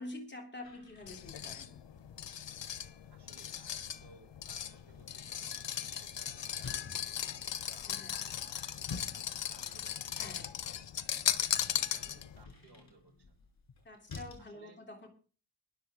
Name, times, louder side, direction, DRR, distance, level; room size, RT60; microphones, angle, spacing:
voice 1, 0.0-1.8 7.9-8.1 10.2-10.6 13.8-15.1, left 2 dB, 25° left, 2 dB, 3.2 m, -47 dB
sound 1, 0.6-14.5, left 4 dB, 55° left, 6.0 m, -52 dB
sound 2, 1.1-12.4, left 9 dB, 80° left, 1.1 m, -38 dB
voice 2, 3.1-10.4 11.1-13.4 14.4-15.1, right 3 dB, 70° right, 2 dB, 6.3 m, -62 dB
21.5 x 7.4 x 3.6 m, 0.36 s
wide cardioid pair, 170°, 42 cm